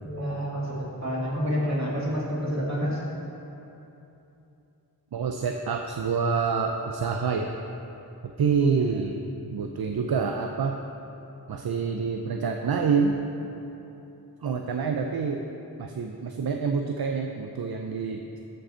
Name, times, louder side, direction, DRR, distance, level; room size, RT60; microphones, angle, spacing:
voice 1, 0.0-3.0, equal, 45° right, -6 dB, 2.2 m, -28 dB
voice 2, 5.1-7.6 8.2-9.2 9.5-10.8 11.5-13.2 14.4-15.5 15.8-18.3, right 5 dB, 70° right, 4 dB, 0.5 m, -27 dB
14.0 x 5.3 x 4.4 m, 3.0 s
wide cardioid pair, 55°, 38 cm